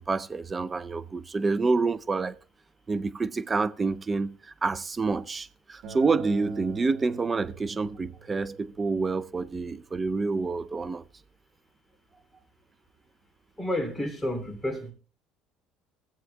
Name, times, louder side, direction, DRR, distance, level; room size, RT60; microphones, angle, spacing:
voice 1, 0.0-2.3 2.9-11.0, right 4 dB, 25° right, 0.5 m, -28 dB
Acoustic guitar, 5.8-11.0, right 6 dB, 60° right, 2.1 m, -48 dB
voice 2, 13.6-14.9, left 1 dB, 5° left, 2.9 m, -30 dB
17.0 x 7.6 x 2.3 m
supercardioid pair, 105°, 0 cm